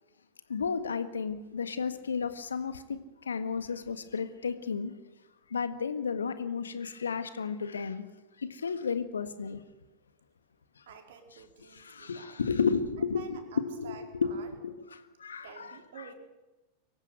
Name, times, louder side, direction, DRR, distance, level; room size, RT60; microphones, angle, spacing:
voice 1, 0.5-2.8 3.2-4.9 5.5-8.0 8.5-9.6 11.7-14.4 14.6-16.1, left 5 dB, 70° left, 11 dB, 1.6 m, -33 dB
voice 2, 10.9-12.4 13.1-14.5 15.4-16.1, right 7 dB, 60° right, 4 dB, 4.2 m, -50 dB
24.0 x 15.0 x 9.4 m, 1.1 s
figure-of-eight pair, 90°, 0 cm